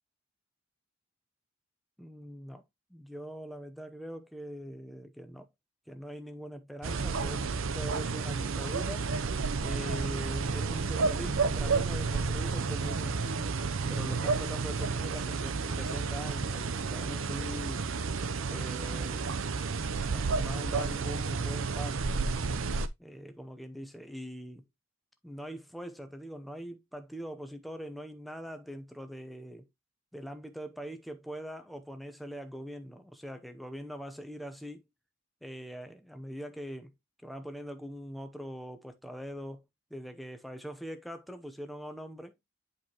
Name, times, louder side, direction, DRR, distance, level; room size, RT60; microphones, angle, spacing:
voice 1, 2.0-2.6 2.9-5.5 5.9-7.5 7.7-9.1 9.6-13.3 13.9-17.8 18.5-19.3 20.0-22.1 23.0-24.6 25.2-29.7 30.1-34.8 35.4-36.9 37.2-39.6 39.9-42.4, equal, ahead, 0.6 m, -42 dB
sound 1, 6.8-22.9, right 4 dB, 65° right, 0.6 m, -31 dB
8.4 x 4.8 x 2.9 m
head